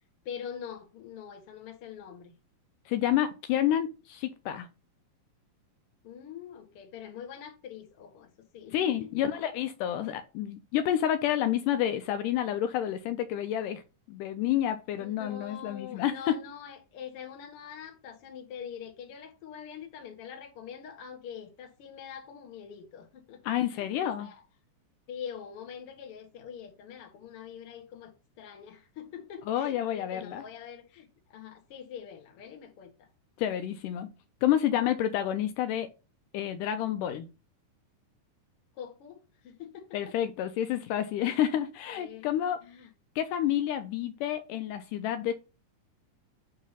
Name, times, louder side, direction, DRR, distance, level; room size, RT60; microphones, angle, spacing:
voice 1, 0.3-2.3 6.0-9.1 14.9-24.4 25.1-33.1 38.8-40.1 41.2-41.4 41.9-42.3 42.6-42.9, left 8 dB, 55° left, 1.8 m, -44 dB
voice 2, 2.9-4.7 8.7-13.8 14.1-16.4 23.5-24.3 29.5-30.4 33.4-34.1 34.4-35.9 36.3-37.3 39.9-42.6 43.2-45.3, left 11 dB, 80° left, 2.1 m, -29 dB
8.1 x 2.8 x 5.5 m
omnidirectional pair, 3.8 m